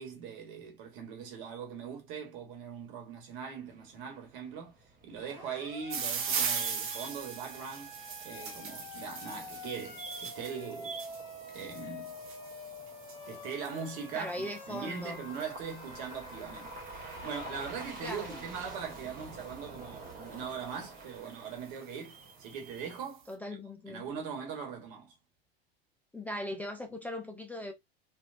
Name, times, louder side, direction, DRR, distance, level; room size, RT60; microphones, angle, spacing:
voice 1, 0.0-4.8 5.0-8.0 8.2-11.0 11.5-12.2 13.3-23.3 23.9-25.1, right 6 dB, 60° right, 1.4 m, -41 dB
sound 1, 3.7-23.0, right 2 dB, 30° right, 1.6 m, -50 dB
Siren, 5.2-17.6, left 4 dB, 55° left, 1.1 m, -47 dB
sound 2, 5.9-19.1 20.0-20.4 21.0-21.1 21.3-21.4 21.7-23.0, right 6 dB, 45° right, 1.1 m, -40 dB
voice 2, 14.1-15.2 18.0-18.4 23.3-24.0 26.1-27.7, left 1 dB, 5° left, 0.6 m, -39 dB
3.3 x 2.6 x 2.5 m
hypercardioid pair, 90°, 30 cm